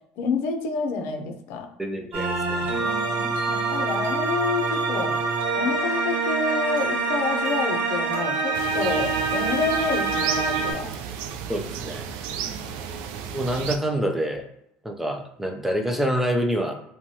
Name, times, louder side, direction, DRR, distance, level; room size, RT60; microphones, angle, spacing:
voice 1, 0.2-1.7 2.8-5.2 5.6-10.9 12.4-12.6, left 4 dB, 70° left, 5 dB, 0.5 m, -28 dB
voice 2, 1.8-2.7 11.5-12.1 13.3-14.4 14.8-16.7, equal, 5° right, 3 dB, 0.3 m, -26 dB
sound 1, 2.1-10.7, right 3 dB, 45° right, 0.7 m, -25 dB
sound 2, 8.5-13.8, right 8 dB, 90° right, 0.3 m, -33 dB
3.0 x 2.2 x 2.7 m, 0.77 s
cardioid pair, 140°, 4 cm